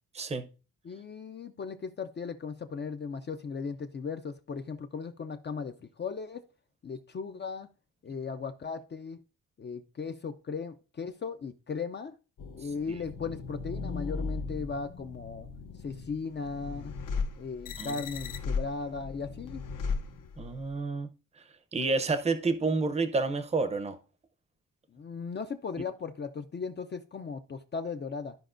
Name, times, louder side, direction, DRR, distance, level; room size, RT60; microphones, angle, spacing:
voice 1, 0.2-0.5 17.8-18.0 20.4-21.1 21.7-24.0, right 3 dB, 20° right, 0.6 m, -29 dB
voice 2, 0.8-6.4 6.8-7.7 8.0-9.2 9.6-12.2 12.5-15.5 15.8-17.0 17.4-19.6 24.9-28.4, left 5 dB, 35° left, 0.4 m, -37 dB
sound 1, 12.4-20.7, left 4 dB, 75° left, 0.9 m, -37 dB
13.5 x 5.0 x 2.5 m
wide cardioid pair, 180°, 32 cm